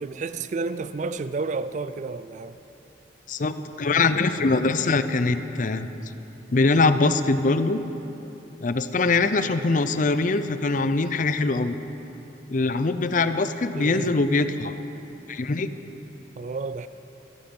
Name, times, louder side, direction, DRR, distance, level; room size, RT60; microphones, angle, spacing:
voice 1, 0.0-2.6 13.7-14.1 16.4-16.9, right 4 dB, 40° right, 13 dB, 0.3 m, -31 dB
voice 2, 3.3-5.9 6.5-7.8 8.6-11.8 12.5-14.7 15.3-15.7, left 3 dB, 45° left, 11 dB, 0.5 m, -23 dB
16.0 x 13.0 x 5.4 m, 3.0 s
head